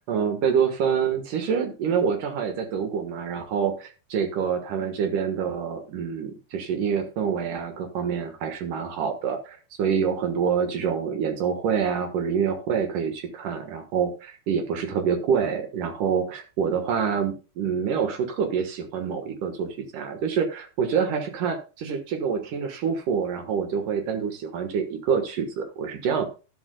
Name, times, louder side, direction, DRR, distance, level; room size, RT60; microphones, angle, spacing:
voice 1, 0.1-26.3, right 7 dB, 75° right, 6 dB, 1.9 m, -26 dB
12.0 x 11.5 x 2.2 m, 0.32 s
omnidirectional pair, 5.9 m